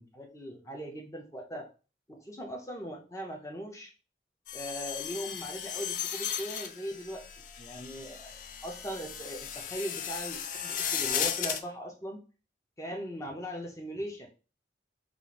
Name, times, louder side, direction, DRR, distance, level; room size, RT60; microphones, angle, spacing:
voice 1, 0.0-1.7 2.1-3.9 4.5-7.3 7.6-12.2 12.8-14.3, equal, 15° left, 1 dB, 0.6 m, -39 dB
sound 1, 4.5-11.6, left 8 dB, 45° left, 0.3 m, -35 dB
3.7 x 2.5 x 3.3 m, 0.35 s
head